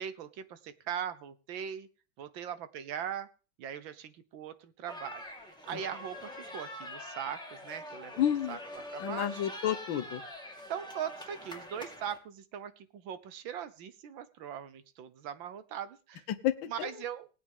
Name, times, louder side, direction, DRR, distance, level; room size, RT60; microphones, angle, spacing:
voice 1, 0.0-1.9 2.2-3.3 3.6-5.2 5.7-8.1 8.5-8.6 8.9-9.4 10.7-16.3 16.7-17.3, right 9 dB, 70° right, 13 dB, 1.6 m, -40 dB
sound 1, 4.9-12.2, left 1 dB, ahead, 2.1 m, -44 dB
voice 2, 8.2-8.6 9.0-10.2 16.3-16.9, left 10 dB, 70° left, 10 dB, 1.6 m, -30 dB
19.5 x 8.5 x 3.5 m, 0.35 s
omnidirectional pair, 2.3 m